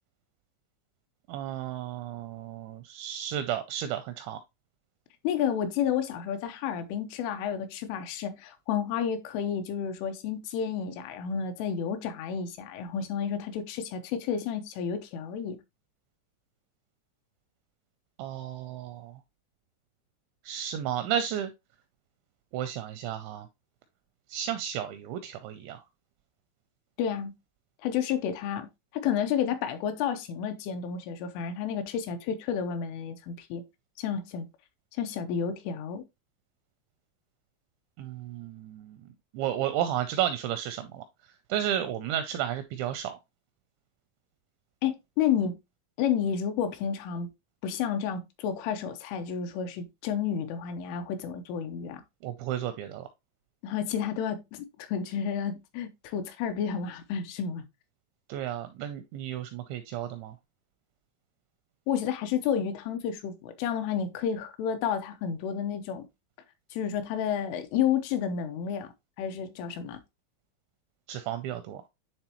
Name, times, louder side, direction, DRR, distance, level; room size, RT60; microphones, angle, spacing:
voice 1, 1.3-4.4 18.2-19.2 20.4-21.5 22.5-23.5 24.3-25.8 38.0-39.0 39.3-41.0 41.5-43.2 52.2-53.1 58.3-60.4 71.1-71.8, right 10 dB, 85° right, 2.6 m, -33 dB
voice 2, 5.2-15.6 27.0-27.3 27.8-28.7 28.9-33.6 34.0-34.5 35.0-36.0 44.8-45.6 46.0-47.3 47.6-52.0 53.6-57.6 61.9-66.0 66.7-68.9 69.2-70.0, left 8 dB, 80° left, 3.2 m, -31 dB
10.0 x 3.6 x 2.9 m
omnidirectional pair, 5.7 m